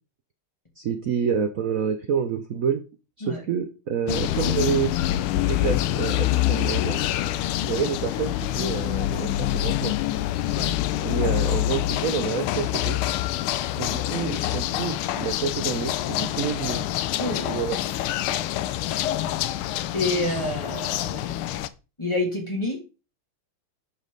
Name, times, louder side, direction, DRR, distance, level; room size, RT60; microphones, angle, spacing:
voice 1, 0.8-2.8 3.2-7.0 7.6-10.0 11.0-13.0 13.8-16.8 17.5-17.8, right 7 dB, 70° right, 8 dB, 0.7 m, -28 dB
sound 1, 4.1-21.7, left 14 dB, 85° left, 1.5 m, -26 dB
voice 2, 17.2-17.5 19.9-21.4 22.0-22.8, left 1 dB, 15° left, -1 dB, 2.4 m, -28 dB
11.5 x 5.2 x 3.9 m, 0.31 s
omnidirectional pair, 2.3 m